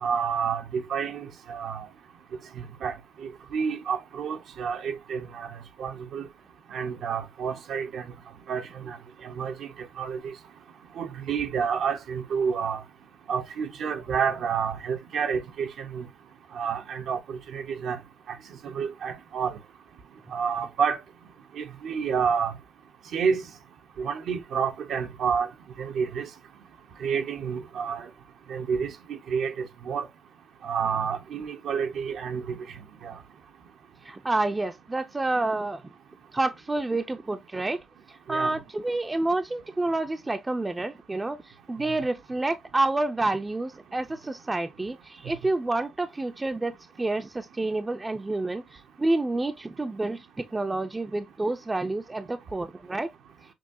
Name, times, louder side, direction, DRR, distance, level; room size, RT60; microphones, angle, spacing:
voice 1, 0.0-1.9 2.6-2.9 3.2-6.3 6.7-8.1 8.5-9.0 9.2-9.7 10.0-10.3 11.0-12.8 13.3-16.1 16.5-18.0 18.3-18.4 18.6-19.6 20.3-21.0 21.6-22.5 23.1-23.4 24.0-25.5 25.8-26.3 27.0-28.0 28.5-28.9 29.3-30.1 30.6-32.6 33.0-33.1 38.3-38.5 41.9-42.0, right 6 dB, 70° right, 0.8 m, -29 dB
voice 2, 34.0-35.8 36.3-37.8 38.3-41.4 41.7-46.7 47.0-48.6 49.0-53.1, right 2 dB, 20° right, 0.5 m, -28 dB
6.1 x 2.3 x 2.6 m
cardioid pair, 90°, 0 cm